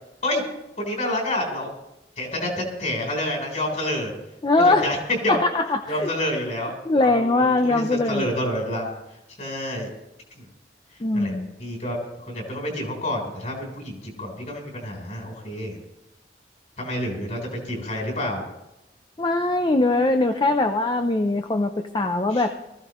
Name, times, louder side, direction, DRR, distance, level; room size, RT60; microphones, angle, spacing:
voice 1, 0.8-1.7 2.2-4.1 4.5-5.0 5.2-5.4 5.9-9.9 10.4-10.5 10.9-11.3 11.6-15.8 16.8-18.4 22.3-22.5, left 1 dB, 45° left, 1 dB, 3.9 m, -29 dB
voice 2, 4.4-4.9 5.3-6.1 6.9-8.3 11.0-11.5 19.2-22.5, left 2 dB, 25° left, 7 dB, 0.6 m, -21 dB
19.5 x 14.5 x 3.1 m, 0.92 s
head